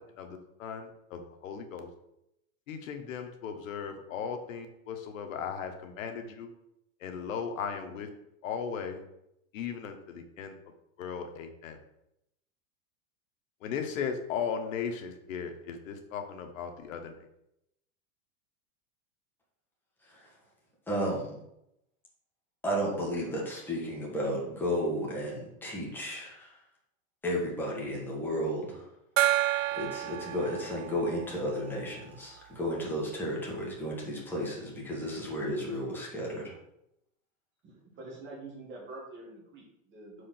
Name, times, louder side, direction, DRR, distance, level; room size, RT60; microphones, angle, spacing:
voice 1, 0.0-1.9 2.7-6.5 7.0-8.1 8.4-9.0 9.5-10.5 11.0-11.8 13.6-17.1, left 6 dB, 75° left, 6 dB, 1.3 m, -37 dB
voice 2, 20.9-21.4 22.6-26.5 27.2-28.9 29.8-36.6, equal, 5° left, -4 dB, 1.7 m, -33 dB
Gong, 29.2-32.4, right 15 dB, 75° right, 0.5 m, -31 dB
voice 3, 37.6-40.2, right 2 dB, 30° right, -3 dB, 1.9 m, -46 dB
5.6 x 4.9 x 5.9 m, 0.83 s
supercardioid pair, 165°, 40 cm